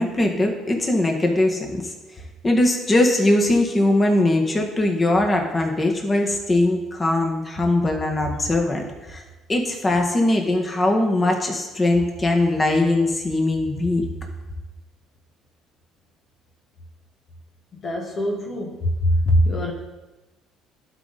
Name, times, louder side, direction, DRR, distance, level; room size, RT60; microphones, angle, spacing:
voice 1, 0.0-1.9 2.4-9.2 9.5-14.0, left 1 dB, 30° left, 2 dB, 1.5 m, -21 dB
voice 2, 17.7-19.7, equal, 50° left, 0 dB, 1.2 m, -22 dB
11.5 x 4.2 x 4.0 m, 1.1 s
supercardioid pair, 65°, 0 cm